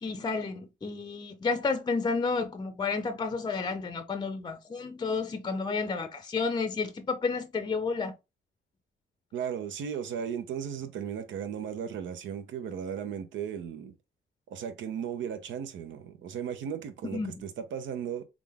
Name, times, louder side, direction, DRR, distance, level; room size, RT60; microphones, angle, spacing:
voice 1, 0.0-8.1 17.1-17.4, left 4 dB, 20° left, 0.6 m, -31 dB
voice 2, 9.3-13.9 14.5-18.2, right 8 dB, 70° right, 0.7 m, -36 dB
3.7 x 2.4 x 3.4 m
cardioid pair, 90°, 20 cm